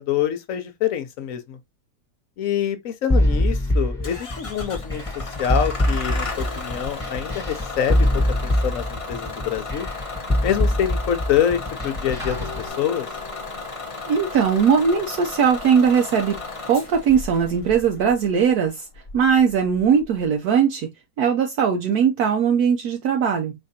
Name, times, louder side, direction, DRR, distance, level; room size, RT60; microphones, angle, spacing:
voice 1, 0.0-1.6 2.4-9.9 10.4-13.1, left 9 dB, 60° left, 1.0 m, -26 dB
sound 1, 3.1-12.6, left 1 dB, ahead, 1.1 m, -23 dB
Bus / Engine starting, 4.0-20.2, left 3 dB, 30° left, 0.6 m, -35 dB
sound 2, 12.2-13.7, left 3 dB, 20° right, 0.9 m, -37 dB
voice 2, 14.1-16.4 16.7-18.9 19.1-20.9 21.2-23.5, right 7 dB, 70° right, 1.1 m, -19 dB
4.8 x 3.3 x 2.7 m
omnidirectional pair, 1.8 m